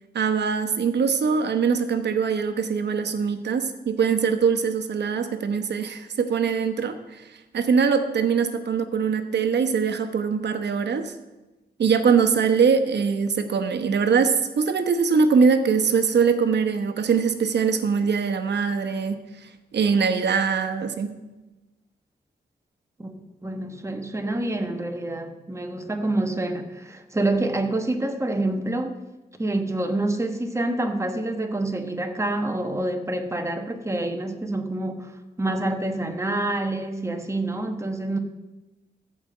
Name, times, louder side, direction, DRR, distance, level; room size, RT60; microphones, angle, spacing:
voice 1, 0.1-11.1 11.8-21.1, right 6 dB, 90° right, 8 dB, 1.0 m, -22 dB
voice 2, 23.0-29.0 29.4-35.1 35.4-38.2, right 2 dB, 15° right, 5 dB, 1.2 m, -27 dB
14.0 x 5.1 x 7.7 m, 1.1 s
wide cardioid pair, 115°, 17 cm